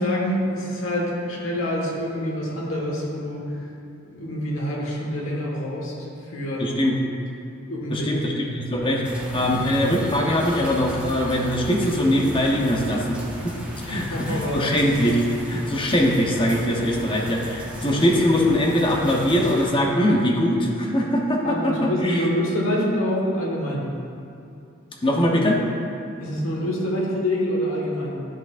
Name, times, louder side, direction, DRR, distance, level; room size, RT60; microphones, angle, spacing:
voice 1, 0.0-3.6 4.0-6.7 7.7-8.1 9.4-9.5 13.9-14.7 21.4-23.9 26.2-28.3, equal, 75° left, -3 dB, 1.4 m, -26 dB
voice 2, 6.6-7.0 7.9-9.0 9.3-13.2 13.4-13.6 13.9-22.2 25.0-25.6, equal, 25° left, -1 dB, 0.8 m, -22 dB
sound 1, 9.0-19.7, equal, 5° right, 0.8 m, -36 dB
10.5 x 5.9 x 2.5 m, 2.5 s
head